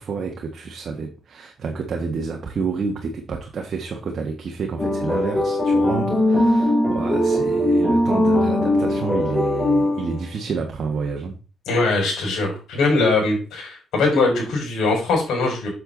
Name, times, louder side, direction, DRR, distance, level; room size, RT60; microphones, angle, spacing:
voice 1, 0.0-11.4, right 5 dB, 50° right, 2 dB, 1.5 m, -29 dB
sound 1, 4.8-10.2, left 1 dB, 15° left, 4.2 m, -20 dB
voice 2, 11.7-15.7, left 3 dB, 75° left, 0 dB, 5.4 m, -21 dB
8.0 x 7.7 x 3.9 m, 0.35 s
cardioid pair, 90°, 0 cm